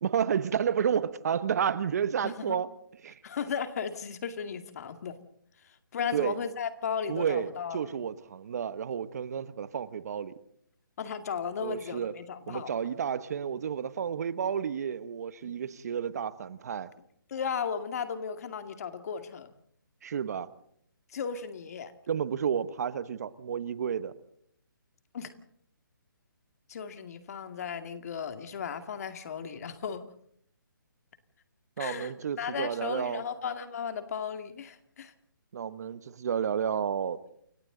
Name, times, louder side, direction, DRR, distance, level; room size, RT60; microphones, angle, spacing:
voice 1, 0.0-2.7 3.0-3.2 6.1-6.4 7.1-10.3 11.6-12.1 12.5-16.9 20.0-20.5 22.1-24.1 31.8-33.2 35.5-37.2, right 8 dB, 50° right, 1.2 m, -31 dB
voice 2, 2.2-2.6 3.2-5.2 5.6-7.9 11.0-12.7 15.4-15.6 17.3-19.5 21.1-21.9 25.1-25.3 26.7-30.1 31.8-35.1, left 6 dB, 45° left, 2.2 m, -35 dB
29.0 x 23.5 x 3.9 m
hypercardioid pair, 150°, 11 cm